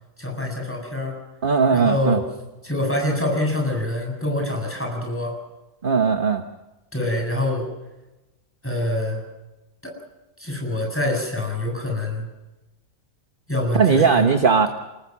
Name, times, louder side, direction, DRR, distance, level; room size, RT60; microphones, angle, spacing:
voice 1, 0.2-1.1 1.7-2.2 2.6-5.4 6.9-7.7 8.6-9.2 9.8-10.0 10.4-12.2 13.5-14.3, left 1 dB, 5° left, 1 dB, 7.6 m, -25 dB
voice 2, 1.4-2.2 5.8-6.4 13.7-14.7, right 5 dB, 35° right, 7 dB, 1.2 m, -18 dB
29.0 x 20.0 x 6.1 m, 1.0 s
omnidirectional pair, 1.8 m